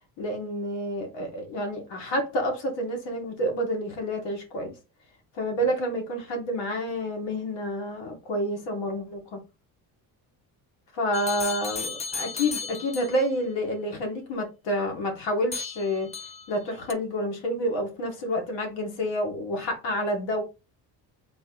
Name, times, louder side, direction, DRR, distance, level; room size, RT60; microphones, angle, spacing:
voice 1, 0.2-4.7 5.4-9.4 10.9-16.1 16.5-20.4, equal, 85° left, 1.7 m, -29 dB
sound 1, 11.1-13.3 15.5-16.6 16.9-17.0, left 5 dB, 20° left, 0.3 m, -35 dB
4.1 x 2.8 x 3.9 m
cardioid pair, 110°, 41 cm